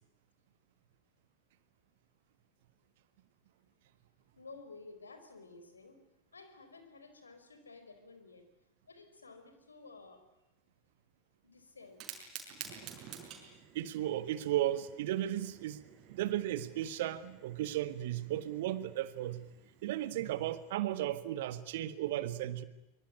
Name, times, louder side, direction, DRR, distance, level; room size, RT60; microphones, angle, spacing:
voice 1, 4.4-6.0 6.3-8.4 8.8-10.2 11.4-12.1, left 3 dB, 75° left, 8 dB, 4.6 m, -53 dB
Fire, 11.8-20.7, right 8 dB, 35° right, 5.6 m, -52 dB
voice 2, 13.7-15.8 16.1-19.4 19.8-22.6, right 13 dB, 55° right, 14 dB, 1.6 m, -35 dB
24.0 x 24.0 x 9.5 m, 0.89 s
figure-of-eight pair, 90°, 0 cm